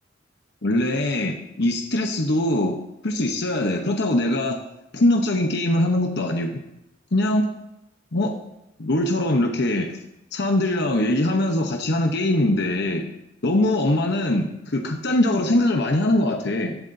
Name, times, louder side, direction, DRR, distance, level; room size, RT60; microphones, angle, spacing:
voice 1, 0.6-2.8 3.0-4.6 4.9-6.6 7.1-7.5 8.1-8.3 8.8-9.9 10.3-13.1 13.4-16.8, left 1 dB, 60° left, 3 dB, 0.9 m, -22 dB
15.0 x 11.5 x 2.7 m, 0.90 s
head